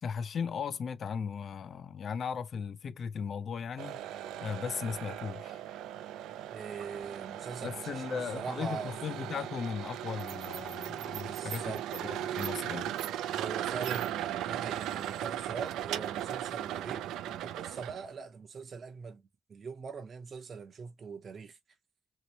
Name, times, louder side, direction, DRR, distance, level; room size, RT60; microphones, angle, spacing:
voice 1, 0.0-4.0 4.4-5.6 7.6-12.9, left 6 dB, 55° left, 0.4 m, -37 dB
sound 1, 3.8-18.1, right 12 dB, 90° right, 0.3 m, -37 dB
voice 2, 6.5-8.9 11.2-11.8 13.4-19.2 19.5-21.6, right 5 dB, 45° right, 0.6 m, -42 dB
3.0 x 2.8 x 2.8 m
cardioid pair, 90°, 0 cm